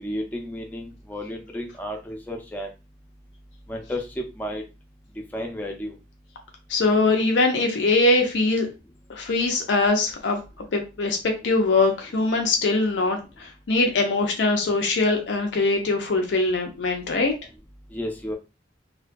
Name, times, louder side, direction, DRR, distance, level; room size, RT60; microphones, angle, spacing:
voice 1, 0.0-2.7 3.7-4.6 5.3-5.9 17.9-18.4, equal, 10° left, 1 dB, 0.4 m, -32 dB
voice 2, 6.7-8.7 9.1-10.4 10.7-11.2 11.4-17.3, left 3 dB, 90° left, 3 dB, 0.5 m, -22 dB
2.3 x 2.2 x 2.5 m, 0.29 s
head